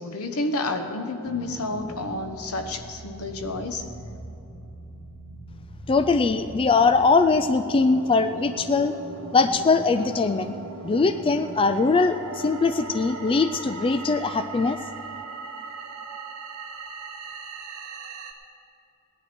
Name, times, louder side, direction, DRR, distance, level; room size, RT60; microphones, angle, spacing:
voice 1, 0.0-3.9, left 2 dB, 85° left, 6 dB, 1.1 m, -30 dB
sound 1, 1.2-18.3, right 3 dB, 80° right, 1.4 m, -40 dB
voice 2, 5.9-9.0 9.3-10.5 10.8-14.8, left 4 dB, 25° left, 10 dB, 0.3 m, -21 dB
17.5 x 10.5 x 4.4 m, 3.0 s
head